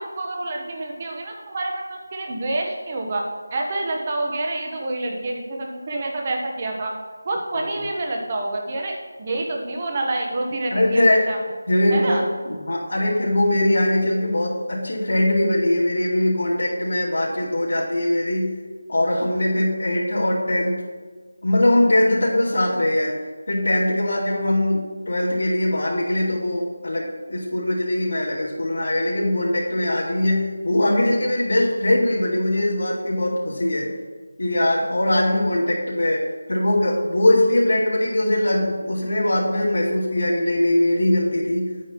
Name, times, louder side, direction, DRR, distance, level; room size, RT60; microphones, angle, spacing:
voice 1, 0.0-3.2 3.5-6.9 7.2-11.4 11.9-12.3, right 2 dB, 25° right, 1 dB, 1.1 m, -27 dB
voice 2, 10.7-11.2 11.7-18.6 18.9-20.8 21.4-23.2 23.5-33.9 34.4-41.9, left 1 dB, 75° left, -8 dB, 2.6 m, -21 dB
9.5 x 9.2 x 3.1 m, 1.4 s
figure-of-eight pair, 170°, 0 cm